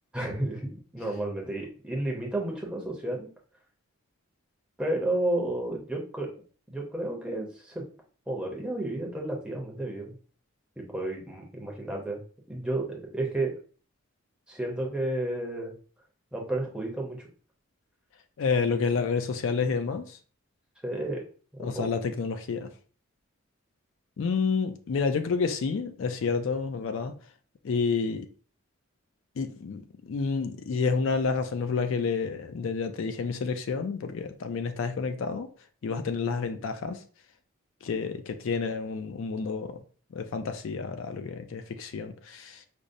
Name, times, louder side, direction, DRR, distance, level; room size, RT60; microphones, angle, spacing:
voice 1, 0.1-3.3 4.8-6.4 6.7-7.9 8.3-10.1 10.8-12.2 12.5-13.6 14.5-15.7 16.3-17.2 20.8-21.3 21.5-21.9, right 1 dB, 5° right, 0.6 m, -32 dB
voice 2, 18.4-20.2 21.6-22.7 24.2-27.1 27.6-28.3 29.4-35.5 35.8-37.0 37.8-39.8 40.1-42.6, left 5 dB, 65° left, 0.4 m, -29 dB
5.1 x 2.0 x 2.6 m
head